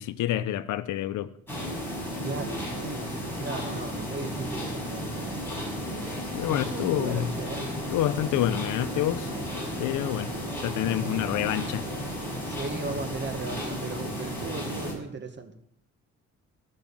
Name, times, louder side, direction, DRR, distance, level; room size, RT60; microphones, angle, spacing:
voice 1, 0.0-1.3 6.3-7.3 7.9-9.3 9.8-10.3 10.6-11.8, left 13 dB, 85° left, 0.8 m, -28 dB
sound 1, 1.5-14.9, equal, 5° left, 6.6 m, -33 dB
voice 2, 2.2-5.3 6.5-7.7 12.4-15.6, right 3 dB, 35° right, 1.8 m, -37 dB
14.5 x 6.4 x 7.2 m
cardioid pair, 90°, 30 cm